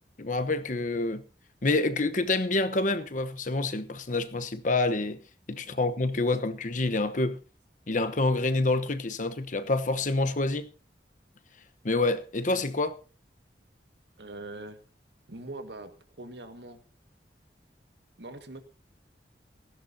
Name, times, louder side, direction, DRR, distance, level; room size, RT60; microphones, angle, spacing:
voice 1, 0.2-1.2 1.6-5.2 5.5-7.4 7.9-10.7 11.8-13.0, left 2 dB, 45° left, 1.0 m, -27 dB
voice 2, 14.2-14.8 15.3-15.9 16.2-16.8 18.2-18.6, right 2 dB, 75° right, 1.8 m, -42 dB
17.5 x 15.5 x 2.8 m
head